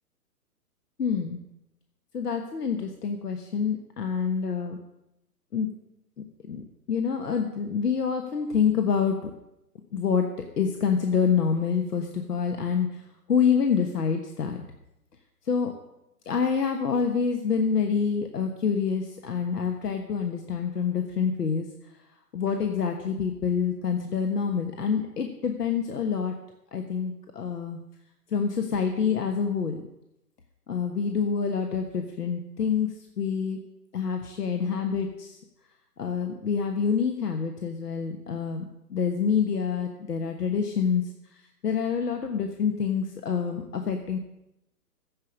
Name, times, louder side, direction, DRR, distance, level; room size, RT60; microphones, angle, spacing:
voice 1, 1.0-1.4 2.1-4.8 5.5-5.7 6.5-9.3 9.9-10.2 10.6-12.9 13.3-14.6 15.5-15.7 16.3-21.7 22.3-26.3 26.7-27.8 28.3-29.8 30.7-32.9 33.2-33.6 33.9-35.3 36.0-41.0 41.6-44.2, left 6 dB, 75° left, 5 dB, 1.4 m, -27 dB
15.0 x 5.3 x 8.4 m, 0.87 s
figure-of-eight pair, 125°, 48 cm